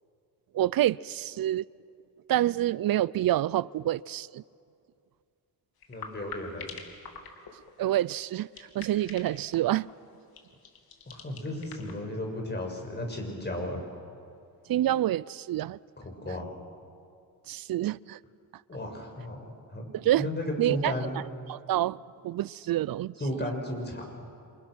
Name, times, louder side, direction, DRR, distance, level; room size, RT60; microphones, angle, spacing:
voice 1, 0.5-1.7 2.3-4.4 7.5-9.9 14.7-15.8 17.5-18.2 19.9-20.3 20.6-20.9 21.5-23.1, right 13 dB, 70° right, 0.5 m, -27 dB
sound 1, 5.8-12.0, left 5 dB, 75° left, 2.8 m, -46 dB
voice 2, 5.9-6.7 11.1-13.8 16.0-16.5 18.7-19.9 20.2-21.2 23.2-24.2, left 1 dB, 30° left, 6.1 m, -34 dB
29.5 x 26.5 x 6.3 m
cardioid pair, 100°, 37 cm